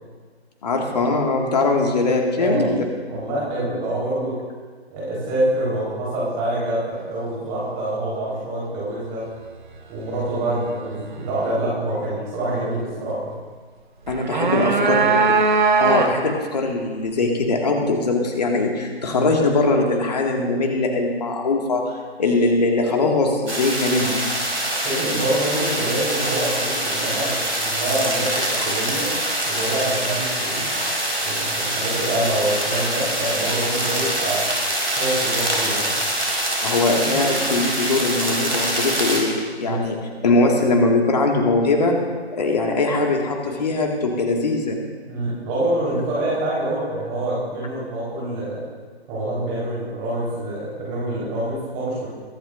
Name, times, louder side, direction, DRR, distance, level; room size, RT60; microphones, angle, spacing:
voice 1, 0.6-2.8 14.1-15.0 15.8-21.9 22.2-24.2 28.3-28.5 32.8-33.1 36.6-42.0 42.3-44.8, left 3 dB, 40° left, 1 dB, 2.0 m, -21 dB
voice 2, 3.1-4.4 4.9-9.2 9.9-13.2 14.6-15.1 19.1-19.3 24.8-29.1 29.5-30.7 31.2-34.5 35.0-36.0 39.6-39.9 45.1-48.6 49.1-52.1, right 1 dB, 15° right, -7 dB, 4.2 m, -26 dB
sound 1, 14.1-16.4, right 4 dB, 45° right, 1.2 m, -19 dB
sound 2, 23.5-39.2, right 1 dB, 80° right, 4.6 m, -24 dB
22.5 x 11.5 x 2.6 m, 1.5 s
figure-of-eight pair, 150°, 33 cm